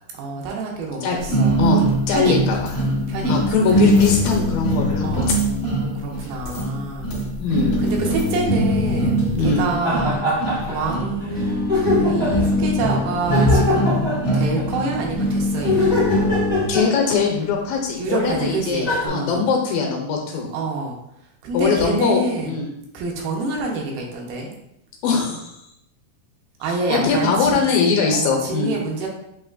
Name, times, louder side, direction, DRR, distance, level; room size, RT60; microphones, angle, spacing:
voice 1, 0.1-2.4 2.8-3.7 5.0-5.4 5.6-7.1 7.8-16.0 18.0-19.5 20.5-21.0 21.4-22.6 22.9-24.5 26.6-27.7 28.1-29.1, right 3 dB, 80° right, -1 dB, 2.7 m, -27 dB
sound 1, 1.3-16.7, equal, 60° left, 0.8 m, -22 dB
voice 2, 1.6-2.6 3.3-5.3 7.4-7.8 9.3-9.7 16.7-20.5 21.5-22.7 25.0-25.5 26.9-28.7, left 5 dB, 80° left, 0 dB, 2.2 m, -21 dB
sound 2, 9.8-10.9 11.2-11.3 11.7-12.5 13.3-14.7 15.6-17.4 18.3-18.4 18.8-19.1, left 2 dB, 50° right, 0.4 m, -23 dB
7.6 x 2.9 x 2.4 m, 0.80 s
omnidirectional pair, 4.3 m